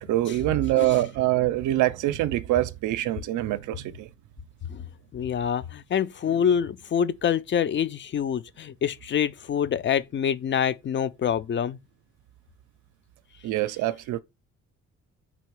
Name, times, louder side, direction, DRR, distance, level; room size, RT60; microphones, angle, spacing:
voice 1, 0.0-4.1 13.4-14.2, right 15 dB, 80° right, 0.5 m, -25 dB
voice 2, 5.1-11.8, left 8 dB, 40° left, 0.4 m, -26 dB
4.0 x 2.7 x 4.6 m
cardioid pair, 90°, 30 cm